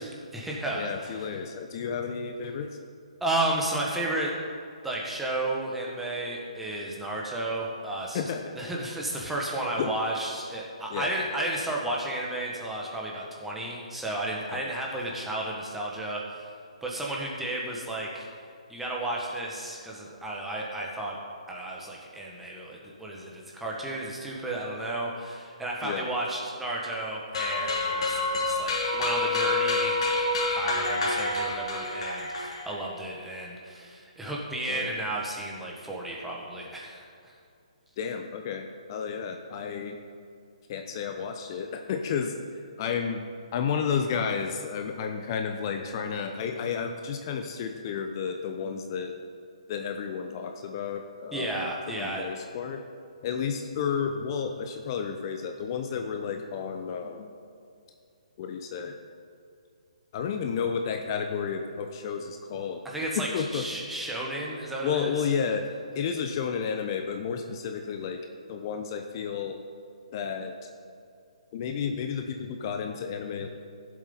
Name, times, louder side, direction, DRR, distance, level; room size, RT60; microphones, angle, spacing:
voice 1, 0.0-1.3 3.2-4.4 4.8-8.2 8.6-16.5 16.8-18.2 18.7-21.2 21.5-30.0 30.5-37.4 51.3-52.2 62.8-65.1, right 1 dB, 5° right, -3 dB, 1.6 m, -33 dB
voice 2, 0.7-2.8 8.1-8.4 9.8-9.9 10.9-11.3 14.5-14.7 25.8-26.1 34.7-35.0 38.0-40.0 40.7-43.2 43.5-49.1 49.7-51.6 52.0-52.9 53.2-57.3 58.4-59.0 60.1-62.8 63.1-63.6 64.8-65.7 65.9-68.2 68.5-69.6 70.1-70.6 71.5-73.5, left 6 dB, 40° left, 4 dB, 0.8 m, -32 dB
sound 1, 27.3-32.9, left 2 dB, 55° left, 2.5 m, -28 dB
15.5 x 7.6 x 4.0 m, 2.4 s
hypercardioid pair, 145°, 4 cm